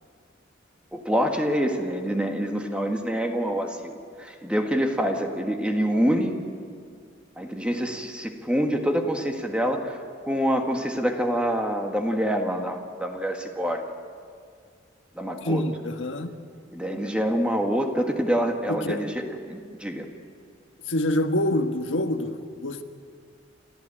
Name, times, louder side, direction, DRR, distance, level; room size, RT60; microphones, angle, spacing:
voice 1, 0.9-6.4 7.4-10.0 10.3-13.8 15.1-15.6 16.7-20.1, equal, 5° right, 3 dB, 1.6 m, -26 dB
voice 2, 15.4-16.3 18.7-19.0 20.9-22.8, left 1 dB, 75° left, 7 dB, 1.4 m, -26 dB
28.5 x 14.0 x 8.8 m, 2.1 s
head